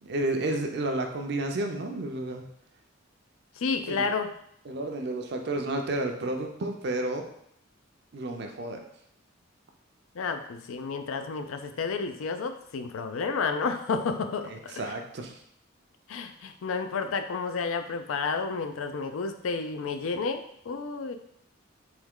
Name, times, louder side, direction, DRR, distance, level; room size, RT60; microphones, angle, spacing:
voice 1, 0.0-2.5 3.9-4.1 4.7-7.2 8.1-8.8 14.5-15.4, right 2 dB, 55° right, 4 dB, 0.5 m, -31 dB
voice 2, 3.6-4.3 10.1-14.8 16.1-21.2, left 4 dB, 85° left, 8 dB, 0.4 m, -31 dB
3.4 x 3.1 x 3.6 m, 0.71 s
head